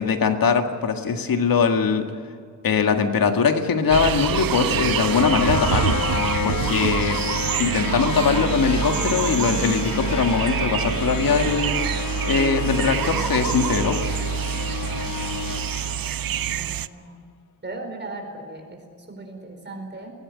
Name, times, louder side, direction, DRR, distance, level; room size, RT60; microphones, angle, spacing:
voice 1, 0.0-2.1 2.6-6.0 6.4-7.3 7.6-11.8 12.3-14.0, left 5 dB, 90° left, 6 dB, 1.9 m, -21 dB
sound 1, 3.6-16.7, left 7 dB, 60° left, 0.9 m, -30 dB
sound 2, 3.9-16.9, right 10 dB, 85° right, 0.6 m, -26 dB
voice 2, 16.2-17.2 17.6-20.1, right 2 dB, 30° right, 3 dB, 4.5 m, -38 dB
20.5 x 17.0 x 9.7 m, 2.2 s
wide cardioid pair, 170°, 34 cm